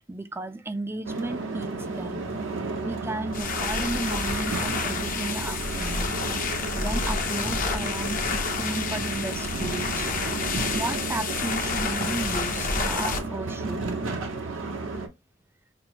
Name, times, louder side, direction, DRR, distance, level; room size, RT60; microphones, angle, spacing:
voice 1, 0.1-2.3 2.8-6.1 6.8-10.1 10.7-13.8, right 2 dB, 10° right, 0.3 m, -34 dB
sound 1, 1.0-15.1, right 3 dB, 85° right, 0.8 m, -33 dB
sound 2, 3.3-13.2, left 4 dB, 45° left, 0.6 m, -29 dB
5.8 x 2.0 x 2.9 m
head